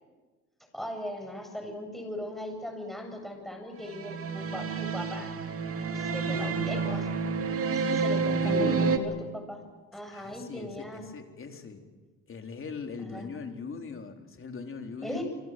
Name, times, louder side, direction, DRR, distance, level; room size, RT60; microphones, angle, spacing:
voice 1, 0.7-5.3 5.9-7.0 7.7-9.6 9.9-11.1 13.1-13.3 15.0-15.2, left 1 dB, ahead, 3 dB, 7.6 m, -39 dB
sound 1, 3.9-9.0, right 5 dB, 50° right, 2.6 m, -29 dB
voice 2, 6.1-7.0 8.2-9.1 10.1-11.8 12.3-15.2, left 5 dB, 45° left, 4 dB, 4.0 m, -40 dB
27.0 x 25.5 x 7.8 m, 1.3 s
cardioid pair, 90°, 30 cm